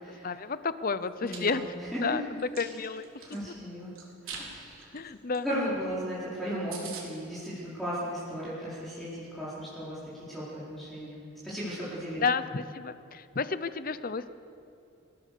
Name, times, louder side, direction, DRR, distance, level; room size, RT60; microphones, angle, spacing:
voice 1, 0.2-1.8 2.0-3.1 4.9-5.5 12.2-14.3, left 4 dB, 40° left, 13 dB, 0.7 m, -31 dB
Chewing mastication, 1.0-1.4 1.9-3.4 3.9-4.4 4.8-5.0 5.3-5.4 5.7-5.8 6.1-6.2 6.4-6.5 6.7-7.0, right 7 dB, 70° right, 4.6 m, -42 dB
voice 2, 1.2-1.6 1.9-2.2 3.2-3.9 4.2-4.8 5.4-12.2, equal, ahead, -11 dB, 4.6 m, -36 dB
25.5 x 17.5 x 6.9 m, 2.6 s
head